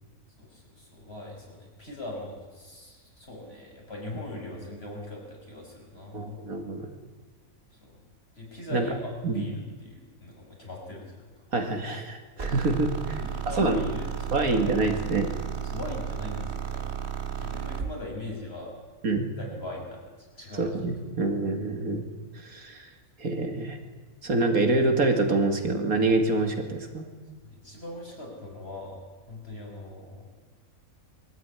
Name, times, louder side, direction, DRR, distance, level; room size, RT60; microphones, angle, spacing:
voice 1, 0.4-6.4 7.7-8.0 8.4-11.3 13.1-14.9 15.2-15.3 15.6-16.8 17.4-18.8 19.4-20.7 27.4-29.0 29.3-30.3, left 2 dB, 40° left, -1 dB, 5.9 m, -41 dB
voice 2, 6.1-6.9 8.7-8.9 9.2-9.4 11.5-13.2 13.6-13.9 14.3-15.3 19.0-19.3 20.5-22.0 22.3-22.8 23.2-23.8 24.2-27.1, right 2 dB, 70° right, 5 dB, 2.7 m, -26 dB
sound 1, 12.4-17.9, right 8 dB, 45° right, 2.0 m, -33 dB
22.0 x 14.0 x 9.8 m, 1.4 s
omnidirectional pair, 1.5 m